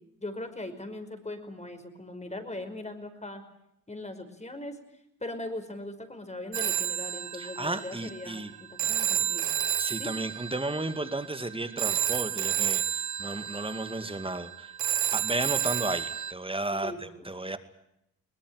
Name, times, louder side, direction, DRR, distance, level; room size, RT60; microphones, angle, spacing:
voice 1, 0.2-3.4 3.9-4.8 5.2-9.5 10.0-10.1 16.7-17.3, left 1 dB, 20° left, 8 dB, 5.4 m, -40 dB
Telephone, 6.5-16.3, right 10 dB, 70° right, 1.4 m, -31 dB
voice 2, 7.4-8.5 9.8-14.7 15.1-17.6, right 2 dB, 15° right, 10 dB, 2.3 m, -33 dB
22.0 x 19.5 x 9.8 m, 0.78 s
supercardioid pair, 60°, 31 cm